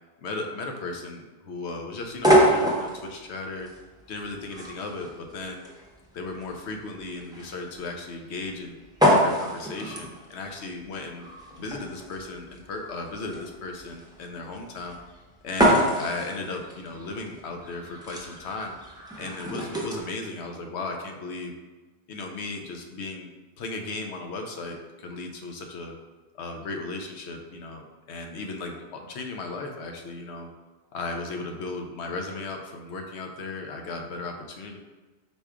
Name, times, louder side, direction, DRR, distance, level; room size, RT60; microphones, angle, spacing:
voice 1, 0.2-3.7 4.1-5.6 6.1-8.8 9.0-11.3 11.6-15.0 15.4-18.8 19.2-21.5 22.1-23.3 23.6-26.0 26.3-30.5 30.9-34.8, left 3 dB, 80° left, 3 dB, 0.9 m, -36 dB
sound 1, 2.0-20.0, equal, 5° right, 0.5 m, -27 dB
4.3 x 2.3 x 4.7 m, 1.3 s
omnidirectional pair, 1.1 m